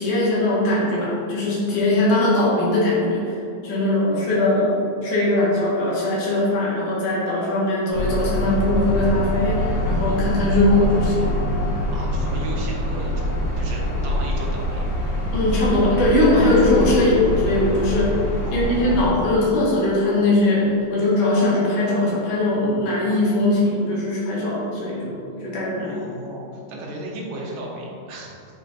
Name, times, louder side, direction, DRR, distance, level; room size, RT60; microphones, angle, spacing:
voice 1, 0.0-3.4 3.6-4.8 5.0-11.3 15.3-18.2 18.5-25.1 25.4-26.0, left 2 dB, 80° left, -6 dB, 2.9 m, -20 dB
sound 1, 7.9-19.1, left 1 dB, 55° left, 1.1 m, -24 dB
voice 2, 11.9-14.8 18.4-19.2 25.8-28.3, right 1 dB, 65° right, -3 dB, 2.1 m, -35 dB
8.6 x 5.0 x 2.6 m, 2.7 s
omnidirectional pair, 3.5 m